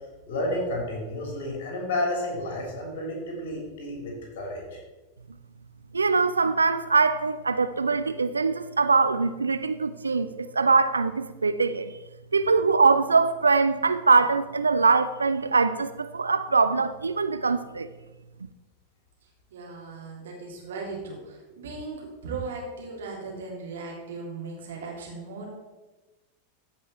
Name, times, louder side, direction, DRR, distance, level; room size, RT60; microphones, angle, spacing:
voice 1, 0.3-4.8, left 1 dB, 50° left, 3.4 m, -31 dB
voice 2, 5.9-11.9 12.3-17.9, right 4 dB, 75° right, 0.4 m, -22 dB
voice 3, 19.2-25.5, right 4 dB, 60° right, 2.8 m, -38 dB
14.0 x 5.4 x 4.4 m
figure-of-eight pair, 90°, 0 cm